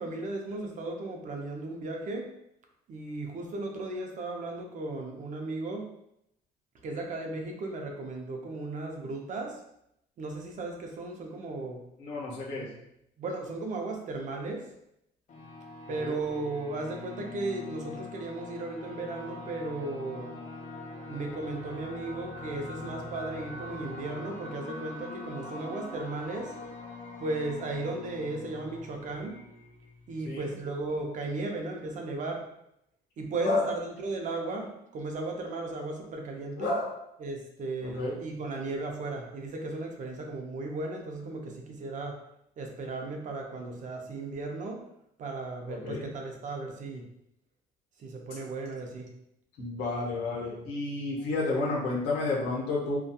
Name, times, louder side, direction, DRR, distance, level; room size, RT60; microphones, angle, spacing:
voice 1, 0.0-2.2 2.9-5.8 6.8-9.6 10.2-11.8 12.5-12.8 13.2-14.7 15.9-20.3 21.1-26.5 27.2-29.4 30.1-32.4 33.2-36.7 37.2-42.2 42.6-44.8 45.2-47.1 48.0-49.1, right 2 dB, 50° right, 2 dB, 0.5 m, -35 dB
voice 2, 12.0-12.7 16.0-16.1 30.2-30.5 33.4-33.7 36.6-37.0 37.8-38.2 45.6-46.1 49.6-53.0, left 2 dB, 85° left, -4 dB, 0.7 m, -31 dB
sound 1, 15.3-30.6, left 2 dB, 45° left, 0.5 m, -43 dB
2.7 x 2.3 x 2.2 m, 0.79 s
cardioid pair, 110°, 17 cm